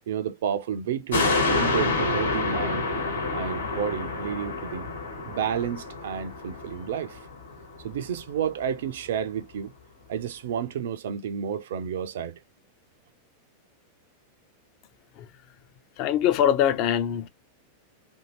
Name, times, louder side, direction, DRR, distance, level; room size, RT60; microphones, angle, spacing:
voice 1, 0.1-2.9 3.3-4.9 5.3-7.3 7.8-9.7 10.1-12.4, right 8 dB, 60° right, 0.4 m, -31 dB
sound 1, 1.1-7.8 8.2-8.3, left 3 dB, 70° left, 1.2 m, -28 dB
voice 2, 16.0-17.3, left 10 dB, 40° left, 0.6 m, -23 dB
2.7 x 2.6 x 2.8 m
figure-of-eight pair, 90°, 0 cm